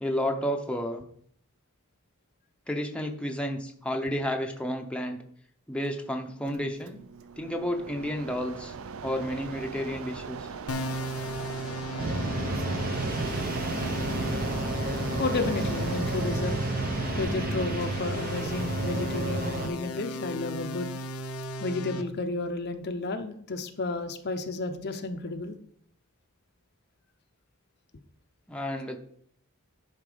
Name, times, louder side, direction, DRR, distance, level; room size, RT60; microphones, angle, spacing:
voice 1, 0.0-1.0 2.7-5.2 5.7-7.0 7.4-8.7 9.0-10.5 28.5-29.0, equal, 5° left, 2 dB, 0.8 m, -31 dB
Mechanisms, 6.4-18.8, right 5 dB, 65° right, 0.5 m, -41 dB
sound 1, 10.7-22.0, left 1 dB, 85° left, 0.8 m, -36 dB
sound 2, 12.0-19.7, right 2 dB, 40° right, 0.9 m, -31 dB
voice 2, 15.2-16.6 17.2-20.9 21.6-25.6, left 3 dB, 50° left, 6 dB, 0.7 m, -32 dB
11.0 x 4.3 x 5.0 m, 0.64 s
head